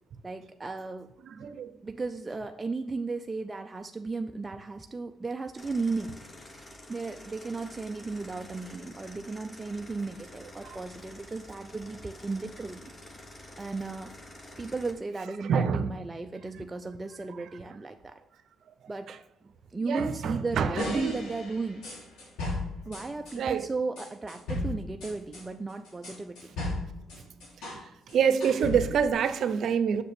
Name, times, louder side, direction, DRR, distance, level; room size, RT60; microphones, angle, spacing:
voice 1, 0.2-1.1 1.8-6.1 6.9-12.9 13.6-14.1 14.6-18.2 18.9-19.2 19.4-21.8 22.9-26.5, right 3 dB, 20° right, 0.5 m, -35 dB
voice 2, 1.2-1.7 10.6-10.8 15.5-15.9 19.8-21.3 23.3-23.7 28.1-30.0, right 7 dB, 65° right, 0.7 m, -26 dB
sound 1, 5.6-14.9, left 1 dB, 20° left, 1.2 m, -48 dB
sound 2, 20.8-23.4 24.0-27.8 28.1-29.1, left 2 dB, 85° left, 2.8 m, -36 dB
6.7 x 6.7 x 3.5 m
cardioid pair, 90°, 0 cm